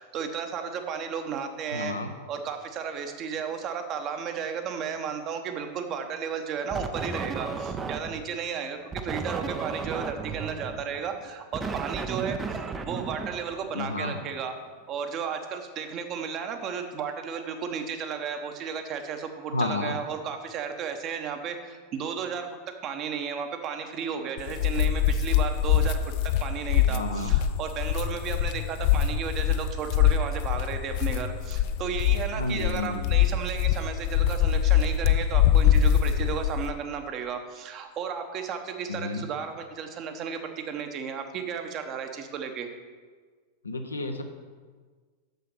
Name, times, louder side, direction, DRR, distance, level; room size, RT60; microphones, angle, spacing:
voice 1, 0.0-1.9 2.3-14.5 14.9-22.5 22.8-42.7, right 7 dB, 35° right, 6 dB, 1.0 m, -34 dB
voice 2, 1.7-2.1 13.7-14.2 19.5-20.0 26.9-27.4 32.4-33.1 38.9-39.3 43.6-44.2, left 2 dB, 80° left, 5 dB, 0.8 m, -31 dB
sound 1, 6.7-8.3 8.9-14.0, right 4 dB, 20° right, 0.6 m, -34 dB
sound 2, 24.4-36.7, left 10 dB, 45° left, 0.5 m, -23 dB
6.8 x 6.8 x 6.5 m, 1.5 s
figure-of-eight pair, 90°, 0 cm